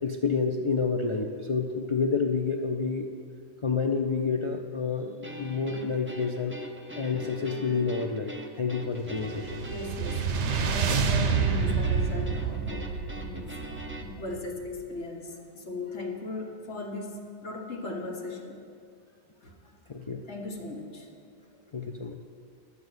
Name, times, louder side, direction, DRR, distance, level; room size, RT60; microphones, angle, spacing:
voice 1, 0.0-3.1 3.6-6.6 6.9-9.6 19.9-20.2 21.7-22.2, left 5 dB, 40° left, 2 dB, 0.4 m, -29 dB
sound 1, 5.2-14.0, equal, 15° right, 0.5 m, -43 dB
sound 2, 9.1-14.5, right 6 dB, 80° right, 1.0 m, -28 dB
voice 2, 9.7-13.5 14.0-18.6 19.4-19.5 20.3-21.1, left 2 dB, 75° left, 0 dB, 1.7 m, -37 dB
11.0 x 7.0 x 7.9 m, 2.3 s
omnidirectional pair, 1.2 m